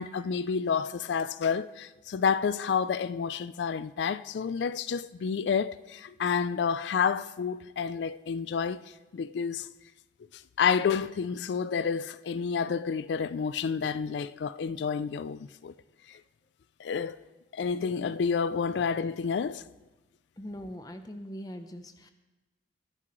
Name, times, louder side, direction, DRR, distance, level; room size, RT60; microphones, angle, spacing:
voice 1, 0.0-8.8 9.1-9.7 10.6-15.7 16.1-16.2 16.8-17.2 17.5-19.6, left 6 dB, 80° left, 0.3 m, -29 dB
voice 2, 20.4-22.1, equal, 20° left, 0.6 m, -41 dB
20.5 x 9.9 x 3.1 m
head